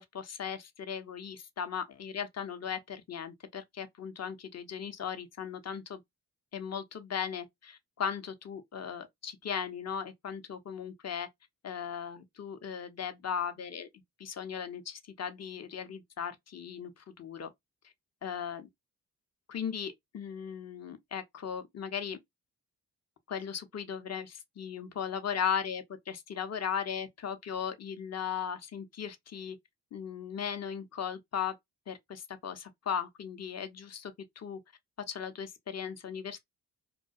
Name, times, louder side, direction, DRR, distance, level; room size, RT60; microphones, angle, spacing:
voice 1, 0.0-6.0 6.5-11.3 11.6-13.9 14.2-17.5 18.2-18.6 19.5-22.2 23.3-29.6 29.9-31.6 31.9-34.6 35.1-36.4, left 7 dB, 40° left, 0.6 m, -37 dB
2.2 x 2.2 x 2.5 m
cardioid pair, 50°, 41 cm